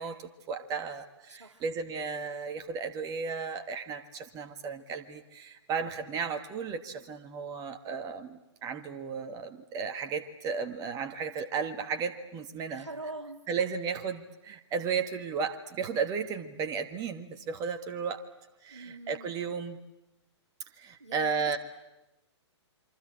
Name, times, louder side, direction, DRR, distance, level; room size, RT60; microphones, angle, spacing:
voice 1, 0.0-12.9 13.5-18.2 18.6-19.8 20.8-21.6, right 5 dB, 25° right, 8 dB, 1.7 m, -34 dB
voice 2, 1.3-1.6 12.7-13.4 18.7-19.4 21.0-21.6, right 2 dB, 85° right, 8 dB, 2.2 m, -43 dB
27.0 x 24.5 x 8.8 m, 0.98 s
figure-of-eight pair, 115°, 15 cm